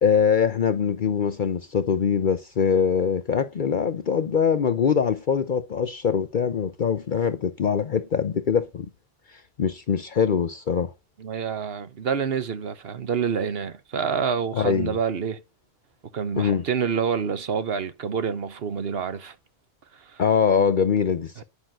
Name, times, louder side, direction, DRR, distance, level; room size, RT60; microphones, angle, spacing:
voice 1, 0.0-8.9 9.3-10.9 14.5-14.9 16.4-16.6 20.2-21.4, left 6 dB, 50° left, 0.8 m, -23 dB
voice 2, 11.2-15.4 16.1-19.3 19.9-20.2 21.4-21.5, right 6 dB, 65° right, 1.2 m, -27 dB
10.0 x 5.5 x 7.6 m
omnidirectional pair, 1.1 m